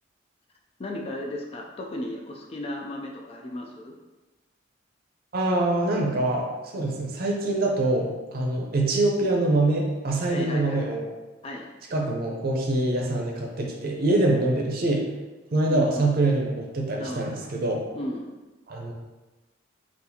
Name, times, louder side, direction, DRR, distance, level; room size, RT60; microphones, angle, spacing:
voice 1, 0.8-4.0 10.3-10.8 11.4-11.7 15.7-16.1 17.0-17.4 17.9-18.3, left 1 dB, 30° left, 1 dB, 0.3 m, -35 dB
voice 2, 5.3-6.5 6.7-11.1 11.9-15.1 15.5-17.8 18.7-18.9, right 2 dB, 50° right, 0 dB, 0.6 m, -24 dB
3.9 x 2.4 x 2.7 m, 1.1 s
head